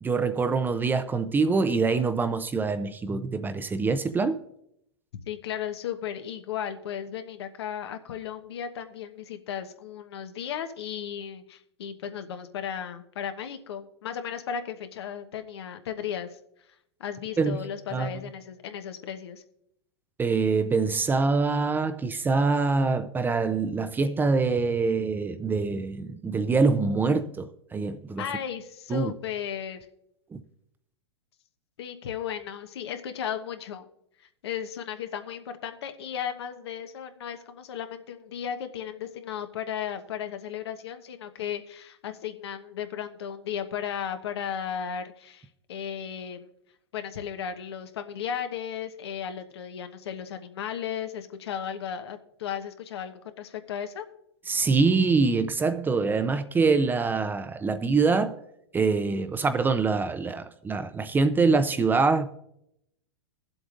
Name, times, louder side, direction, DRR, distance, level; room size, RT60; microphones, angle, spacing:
voice 1, 0.0-4.4 17.4-17.6 17.9-18.1 20.2-28.3 28.9-29.1 30.3-30.4 54.5-58.4 58.7-62.3, right 4 dB, 15° right, 0.6 m, -24 dB
voice 2, 5.3-16.4 16.7-16.8 17.0-19.4 28.2-29.9 31.8-33.8 34.2-46.5 46.9-54.0, left 8 dB, 70° left, 1.2 m, -35 dB
21.5 x 7.8 x 2.5 m
hypercardioid pair, 115°, 14 cm